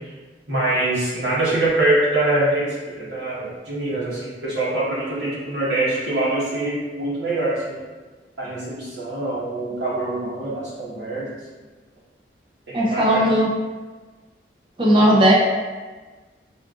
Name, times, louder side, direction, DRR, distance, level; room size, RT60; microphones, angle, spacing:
voice 1, 0.5-7.8 8.4-11.3 12.7-13.3 15.1-15.2, right 2 dB, 70° right, -8 dB, 1.2 m, -24 dB
voice 2, 12.7-13.5 14.8-15.3, equal, 30° right, -4 dB, 0.6 m, -16 dB
4.1 x 2.4 x 2.4 m, 1.3 s
head